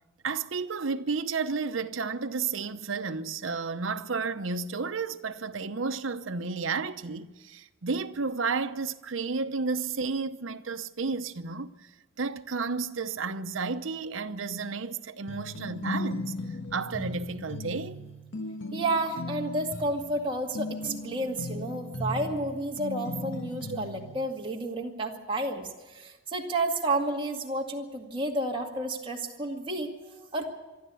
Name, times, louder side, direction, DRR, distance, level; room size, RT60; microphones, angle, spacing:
voice 1, 0.2-11.7 12.2-16.3 16.7-18.0, right 4 dB, 90° right, 0.8 m, -32 dB
sound 1, 15.3-24.2, left 2 dB, 75° left, 1.5 m, -37 dB
voice 2, 18.7-30.5, right 2 dB, 25° right, 2.1 m, -31 dB
25.0 x 12.5 x 8.4 m
head